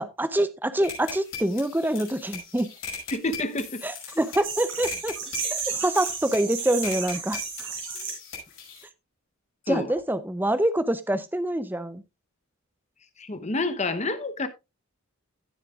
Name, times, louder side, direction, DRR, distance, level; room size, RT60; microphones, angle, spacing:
voice 1, 0.0-2.7 3.8-5.1 5.5-7.4 9.7-12.0, right 1 dB, 10° right, 0.6 m, -26 dB
sound 1, 0.8-8.8, left 6 dB, 60° left, 5.4 m, -40 dB
voice 2, 3.1-3.8 9.7-9.9 13.2-14.5, left 2 dB, 30° left, 0.9 m, -28 dB
sound 2, 4.4-8.1, right 6 dB, 60° right, 4.2 m, -33 dB
16.5 x 7.3 x 2.4 m
head